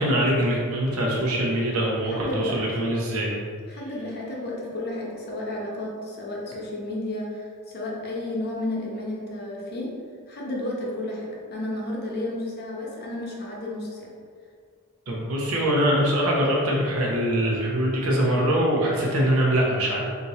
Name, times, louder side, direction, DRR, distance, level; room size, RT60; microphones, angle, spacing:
voice 1, 0.0-3.3 15.1-20.0, equal, 75° right, -3 dB, 0.9 m, -23 dB
voice 2, 2.1-2.6 3.7-9.9 10.3-14.1, left 1 dB, 50° left, -3 dB, 0.9 m, -32 dB
3.5 x 2.8 x 4.2 m, 2.2 s
head